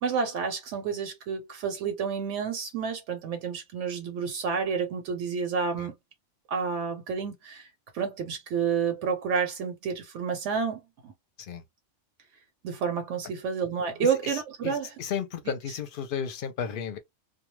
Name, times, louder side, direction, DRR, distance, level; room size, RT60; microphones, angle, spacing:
voice 1, 0.0-5.9 6.5-7.7 7.9-11.1 12.6-14.9, right 6 dB, 80° right, 1.0 m, -30 dB
voice 2, 14.2-17.0, left 7 dB, 55° left, 0.7 m, -34 dB
2.3 x 2.2 x 3.0 m
omnidirectional pair, 1.2 m